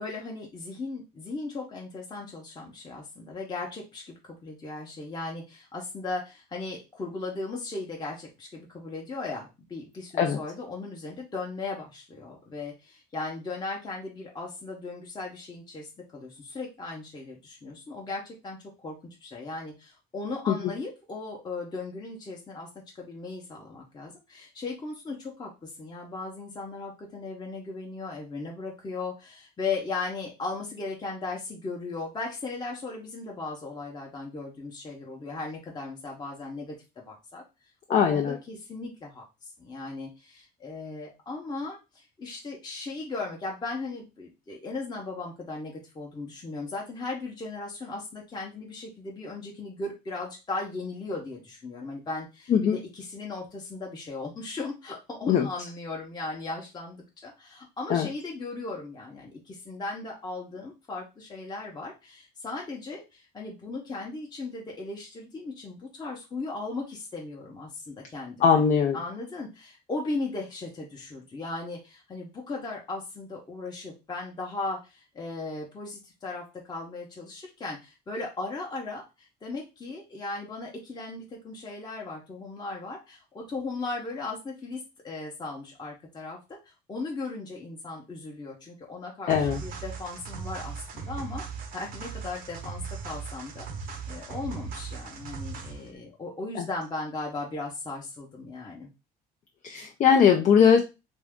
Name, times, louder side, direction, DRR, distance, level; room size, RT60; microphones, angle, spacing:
voice 1, 0.0-19.0 19.2-22.7 23.0-37.4 37.9-68.5 68.9-91.4 91.7-98.9, left 3 dB, 25° left, -2 dB, 0.8 m, -37 dB
voice 2, 37.9-38.4 52.5-52.8 55.3-55.5 57.9-58.1 68.4-69.0 89.3-89.6 96.6-96.7 99.6-100.8, left 7 dB, 45° left, 3 dB, 0.5 m, -20 dB
sound 1, 89.3-95.9, right 5 dB, 55° right, 0.7 m, -38 dB
2.6 x 2.4 x 3.5 m, 0.27 s
cardioid pair, 110°, 17 cm